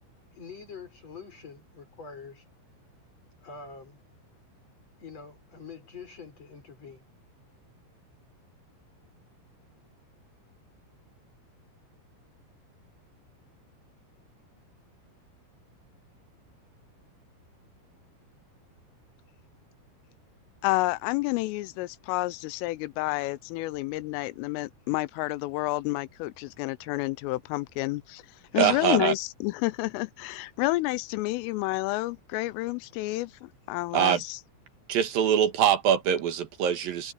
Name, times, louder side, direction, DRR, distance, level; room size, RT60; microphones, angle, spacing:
voice 1, 0.3-2.4 3.4-4.0 5.0-7.0, left 5 dB, 30° left, 7.6 m, -45 dB
voice 2, 20.6-28.2 28.5-34.4, left 20 dB, 85° left, 3.3 m, -30 dB
voice 3, 28.5-29.1 33.9-34.2 34.9-37.1, right 9 dB, 60° right, 2.6 m, -23 dB
omnidirectional pair, 5.7 m